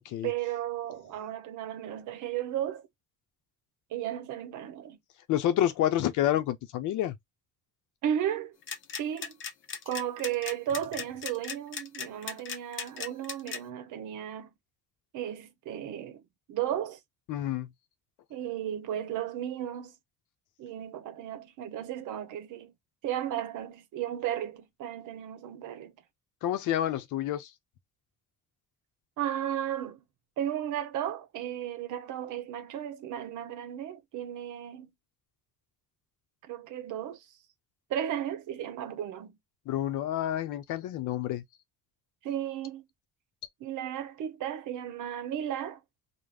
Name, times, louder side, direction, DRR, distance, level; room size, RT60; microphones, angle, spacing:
voice 1, 0.2-2.9 3.9-5.0 8.0-8.6 9.0-9.4 9.9-14.5 15.1-16.2 16.5-17.0 18.3-19.9 20.6-22.7 23.0-25.9 29.2-30.0 30.4-34.9 36.5-37.3 37.9-39.4 42.2-42.8 43.6-45.8, right 10 dB, 80° right, 0.7 m, -34 dB
voice 2, 5.3-7.2 17.3-17.7 26.4-27.5 39.7-41.4, left 12 dB, 85° left, 0.6 m, -28 dB
sound 1, 8.6-13.6, left 6 dB, 40° left, 0.6 m, -37 dB
2.3 x 2.1 x 3.3 m
cardioid pair, 90°, 30 cm